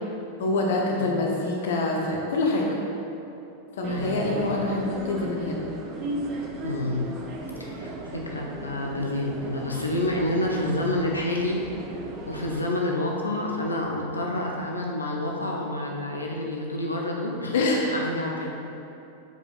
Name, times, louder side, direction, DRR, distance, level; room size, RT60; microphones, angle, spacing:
voice 1, 0.4-2.7 3.8-5.6 17.5-17.9, left 2 dB, 60° left, 0 dB, 0.9 m, -25 dB
sound 1, 3.8-12.6, right 1 dB, 35° right, 0.6 m, -36 dB
voice 2, 3.9-4.6 6.6-7.1 7.6-11.6 12.3-17.5 17.9-18.5, left 1 dB, 80° left, -1 dB, 0.6 m, -29 dB
7.9 x 4.9 x 2.5 m, 2.8 s
figure-of-eight pair, 90°, 0 cm